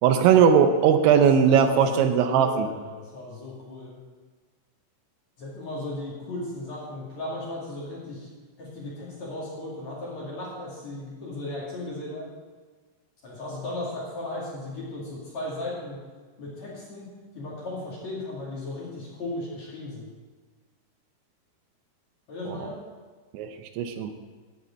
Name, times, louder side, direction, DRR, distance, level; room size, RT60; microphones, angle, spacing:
voice 1, 0.0-2.7 22.5-22.7 23.3-23.5 23.8-24.1, right 7 dB, 80° right, 8 dB, 3.0 m, -19 dB
voice 2, 1.1-4.0 5.4-8.3 8.6-12.3 13.2-16.0 16.4-17.1 17.3-20.1 22.3-22.8, left 2 dB, 45° left, -6 dB, 3.1 m, -36 dB
12.5 x 5.2 x 8.6 m, 1.4 s
omnidirectional pair, 5.4 m